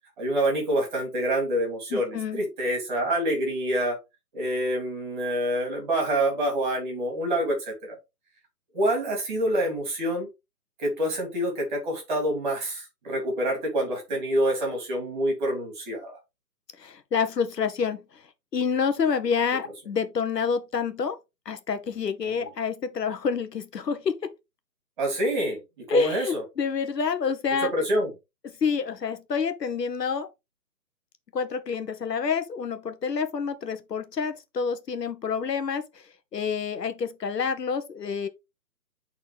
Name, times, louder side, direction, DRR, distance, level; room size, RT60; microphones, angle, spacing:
voice 1, 0.2-4.0 4.3-8.0 8.7-10.3 10.8-16.2 22.4-22.5 25.0-26.4 27.7-28.1, right 1 dB, 30° right, 2.9 m, -27 dB
voice 2, 1.9-2.4 16.8-18.2 18.5-21.2 21.4-24.3 25.9-27.7 28.6-30.3 31.3-36.0 36.3-38.3, left 6 dB, 75° left, 1.2 m, -28 dB
8.4 x 4.1 x 3.4 m
hypercardioid pair, 160°, 49 cm